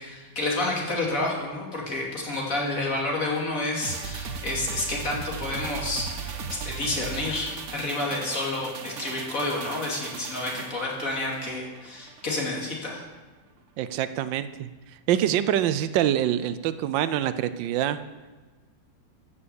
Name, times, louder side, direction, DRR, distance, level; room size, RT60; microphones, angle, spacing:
voice 1, 0.0-13.0, left 2 dB, 45° left, -2 dB, 2.8 m, -30 dB
sound 1, 3.8-12.4 12.7-12.8, right 5 dB, 50° right, 1.0 m, -37 dB
voice 2, 13.8-14.7 15.1-18.0, right 11 dB, 80° right, 13 dB, 1.3 m, -25 dB
14.5 x 6.5 x 7.0 m, 1.3 s
omnidirectional pair, 2.0 m